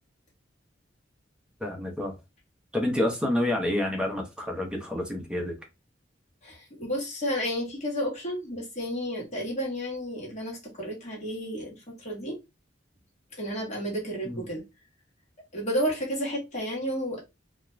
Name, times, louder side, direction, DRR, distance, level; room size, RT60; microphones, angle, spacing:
voice 1, 1.6-2.1 2.7-5.5 14.2-14.4, left 1 dB, 5° right, 0.6 m, -28 dB
voice 2, 6.4-12.4 13.4-14.6 15.5-17.2, equal, 40° left, 1.2 m, -31 dB
2.4 x 2.2 x 3.0 m
head